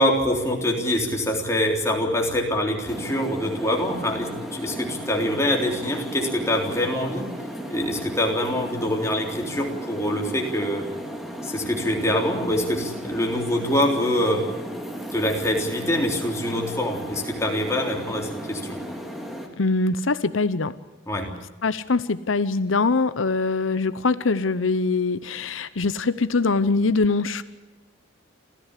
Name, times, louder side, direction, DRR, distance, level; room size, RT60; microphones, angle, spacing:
voice 1, 0.0-7.3 7.7-10.9 11.4-14.5 15.1-18.8 21.1-21.3, left 1 dB, 15° left, 1 dB, 3.7 m, -24 dB
sound 1, 2.9-19.5, equal, ahead, 2.9 m, -35 dB
voice 2, 19.6-20.7 21.6-27.4, left 3 dB, 85° left, 14 dB, 0.8 m, -23 dB
28.0 x 15.0 x 8.4 m, 1.1 s
head